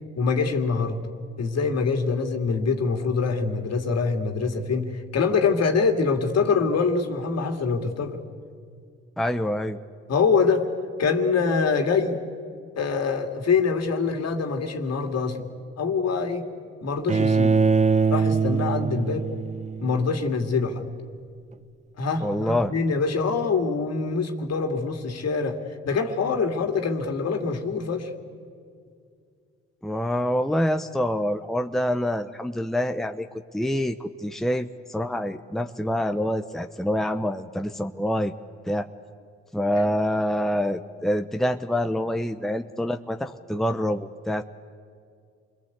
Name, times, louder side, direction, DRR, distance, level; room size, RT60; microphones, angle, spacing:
voice 1, 0.2-1.0 1.4-8.2 10.1-10.7 11.0-12.2 12.8-15.4 15.8-16.4 16.8-17.6 18.1-19.3 19.8-20.8 22.0-25.6 25.9-28.1, left 4 dB, 60° left, 5 dB, 2.6 m, -24 dB
voice 2, 9.2-9.8 22.2-22.7 29.8-33.3 33.5-38.3 38.7-38.9 39.5-44.4, equal, ahead, 7 dB, 1.0 m, -26 dB
Bowed string instrument, 17.1-20.1, right 5 dB, 25° right, 0.8 m, -22 dB
27.5 x 22.0 x 8.3 m, 2.3 s
supercardioid pair, 60°, 29 cm